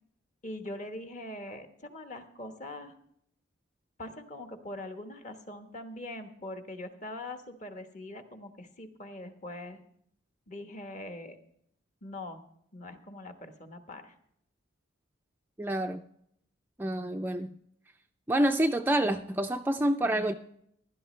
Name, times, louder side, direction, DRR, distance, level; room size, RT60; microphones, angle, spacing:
voice 1, 0.4-2.9 4.0-9.8 10.5-11.4 12.0-12.4 12.7-14.1, left 1 dB, 35° left, 6 dB, 1.2 m, -42 dB
voice 2, 15.6-16.0 16.8-17.5 18.3-20.3, right 1 dB, 10° right, 6 dB, 0.4 m, -27 dB
16.0 x 12.0 x 3.2 m, 0.69 s
head